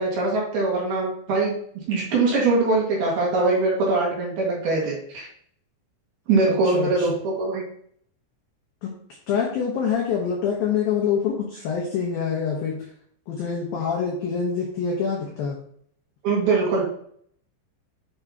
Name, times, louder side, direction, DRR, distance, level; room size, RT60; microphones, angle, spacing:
voice 1, 0.0-1.5 1.9-5.3 6.3-7.6 16.2-16.8, right 3 dB, 60° right, -3 dB, 3.2 m, -22 dB
voice 2, 6.5-7.1 8.8-8.9 9.3-12.8 13.3-15.6, left 6 dB, 85° left, -2 dB, 2.0 m, -26 dB
8.6 x 5.5 x 2.9 m, 0.62 s
omnidirectional pair, 5.8 m